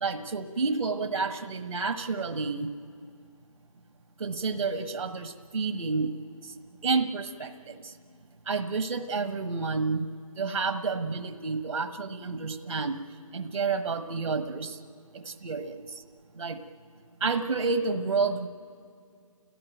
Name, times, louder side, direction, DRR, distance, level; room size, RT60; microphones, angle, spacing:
voice 1, 0.0-2.7 4.2-6.1 6.4-6.5 6.8-7.9 8.5-10.1 10.4-13.0 13.3-14.8 15.4-16.0 16.4-16.6 17.2-18.5, right 4 dB, 70° right, 10 dB, 1.2 m, -30 dB
29.5 x 16.5 x 9.1 m, 2.3 s
hypercardioid pair, 170°, 18 cm